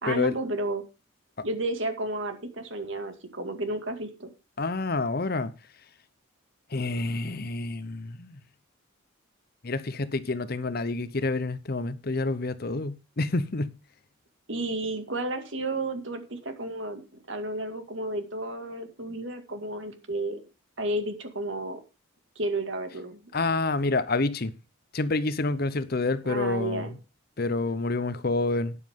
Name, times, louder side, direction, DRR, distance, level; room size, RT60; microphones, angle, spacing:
voice 1, 0.0-0.8 1.4-4.3 14.5-17.0 17.3-20.5 20.8-21.8 22.4-23.2 26.2-26.9, right 2 dB, 65° right, 2.1 m, -32 dB
voice 2, 4.6-5.5 6.7-8.4 9.6-13.7 23.3-24.5 24.9-26.9 27.4-28.8, left 3 dB, 45° left, 0.8 m, -28 dB
12.5 x 9.7 x 3.7 m
head